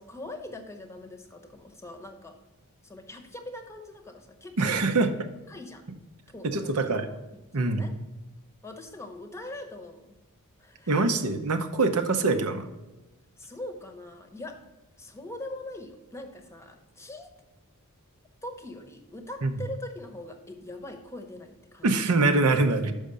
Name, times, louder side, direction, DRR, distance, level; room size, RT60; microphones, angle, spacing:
voice 1, 0.0-2.4 2.8-5.1 5.5-6.0 6.3-7.2 7.5-8.0 8.6-10.2 10.6-10.9 13.4-14.6 15.0-17.3 18.4-22.1, left 1 dB, 10° left, 6 dB, 0.8 m, -42 dB
voice 2, 4.6-5.1 6.4-7.1 7.5-7.8 10.9-12.7 19.4-19.5 21.8-22.9, right 3 dB, 80° right, 7 dB, 0.8 m, -24 dB
6.3 x 5.1 x 6.7 m, 1.1 s
head